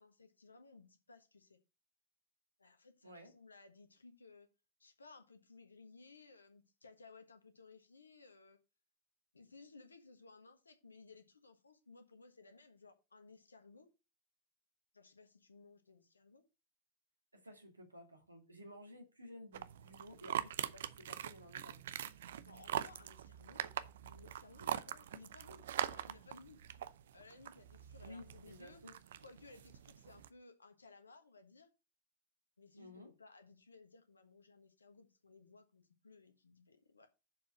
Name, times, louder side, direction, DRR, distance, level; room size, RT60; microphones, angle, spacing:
voice 1, 0.0-1.6 2.6-4.5 4.8-8.6 9.3-13.9 14.9-16.4 22.4-23.7 24.0-26.6 27.1-28.8 29.2-31.7 32.6-37.1, left 3 dB, 75° left, 1.4 m, -60 dB
voice 2, 17.3-22.0 28.0-29.0 32.8-33.1, left 1 dB, 80° right, 2.2 m, -55 dB
sound 1, 19.5-30.3, right 10 dB, 60° right, 0.5 m, -43 dB
7.0 x 4.9 x 6.3 m
figure-of-eight pair, 90°, 0 cm